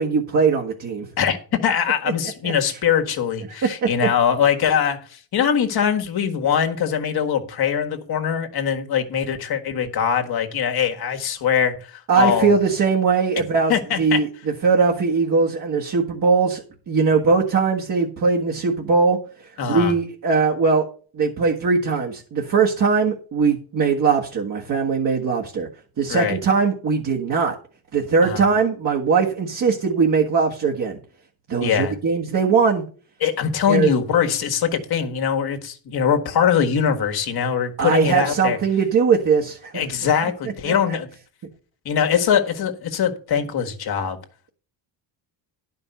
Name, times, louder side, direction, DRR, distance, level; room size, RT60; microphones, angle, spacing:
voice 1, 0.0-1.1 2.4-2.5 3.6-4.1 12.1-13.7 14.0-14.3 14.6-19.2 19.7-20.9 21.1-25.7 26.0-27.6 27.9-31.0 31.5-32.8 33.7-33.9 37.8-39.8 40.6-41.0, right 5 dB, 40° right, 1.6 m, -20 dB
voice 2, 1.2-12.5 13.7-14.2 19.6-19.9 26.1-26.4 28.2-28.4 31.6-32.0 33.2-38.6 39.7-41.1 41.9-44.2, left 8 dB, 55° left, 1.7 m, -22 dB
11.0 x 5.4 x 6.7 m
cardioid pair, 125°, 46 cm